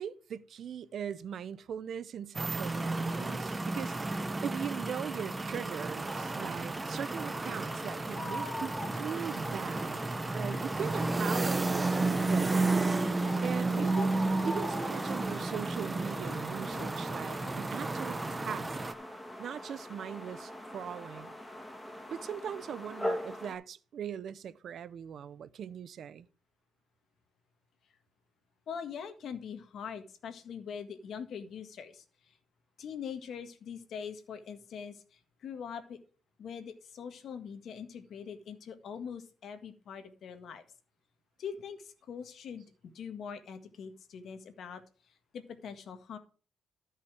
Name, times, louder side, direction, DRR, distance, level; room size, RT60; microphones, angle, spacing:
voice 1, 0.0-10.0 10.3-12.7 13.4-18.8 19.4-21.3 22.1-26.3, right 8 dB, 60° right, 0.6 m, -40 dB
sound 1, 2.3-18.9, right 3 dB, 20° right, 0.9 m, -32 dB
sound 2, 6.6-23.5, left 1 dB, 5° left, 2.1 m, -42 dB
sound 3, 12.0-17.7, left 9 dB, 85° left, 0.9 m, -54 dB
voice 2, 28.7-32.4 32.8-36.0 36.4-40.6 41.4-44.8 45.3-46.2, left 7 dB, 65° left, 1.7 m, -43 dB
13.0 x 5.6 x 4.8 m
cardioid pair, 90°, 0 cm